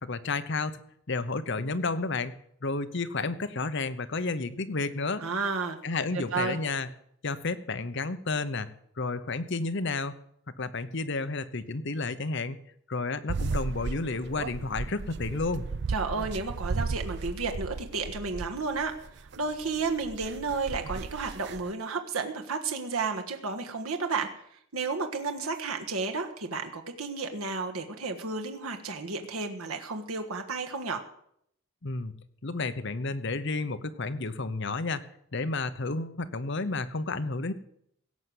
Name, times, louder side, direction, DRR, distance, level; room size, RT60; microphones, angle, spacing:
voice 1, 0.0-0.8 1.1-2.3 2.6-5.2 5.8-6.9 7.2-8.7 9.0-10.1 10.6-12.6 12.9-15.6 31.8-32.1 32.4-35.0 35.3-37.5, left 3 dB, 55° left, 12 dB, 0.9 m, -31 dB
voice 2, 5.2-5.8 6.3-6.6 15.9-24.3 24.7-31.0, right 4 dB, 85° right, 4 dB, 1.5 m, -32 dB
sound 1, 13.3-21.7, right 4 dB, 50° right, 0.5 m, -35 dB
17.0 x 6.8 x 7.8 m, 0.71 s
head